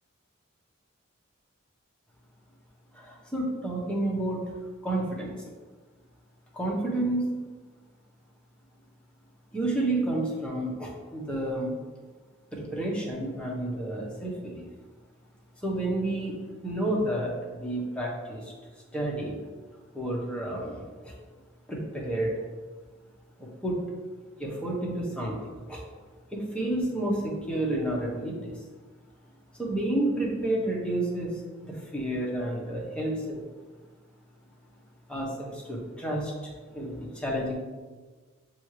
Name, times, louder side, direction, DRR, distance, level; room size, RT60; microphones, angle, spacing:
voice 1, 2.9-4.4 4.8-5.3 6.5-7.2 9.5-11.7 12.5-14.7 15.6-18.5 18.9-19.4 19.9-21.1 21.7-22.3 23.4-23.8 24.4-25.8 26.3-28.5 29.6-31.3 31.6-33.4 35.1-36.3 36.7-37.5, right 1 dB, 5° left, -4 dB, 0.7 m, -30 dB
5.9 x 2.4 x 3.1 m, 1.4 s
head